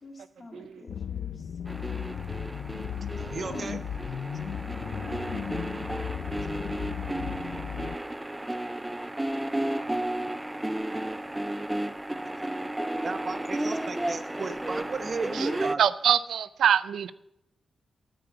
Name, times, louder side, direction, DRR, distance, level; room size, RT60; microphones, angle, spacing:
voice 1, 0.0-1.5 4.6-5.2, left 1 dB, 40° left, 3 dB, 2.3 m, -48 dB
sound 1, 0.9-8.0, left 8 dB, 80° left, 0.5 m, -35 dB
sound 2, 1.7-15.7, right 1 dB, 15° right, 0.4 m, -33 dB
voice 2, 3.2-3.8 13.0-15.8, right 4 dB, 50° right, 9 dB, 1.0 m, -34 dB
voice 3, 15.8-17.1, right 9 dB, 90° right, 15 dB, 0.5 m, -24 dB
13.5 x 5.1 x 8.8 m, 0.82 s
cardioid pair, 75°, 0 cm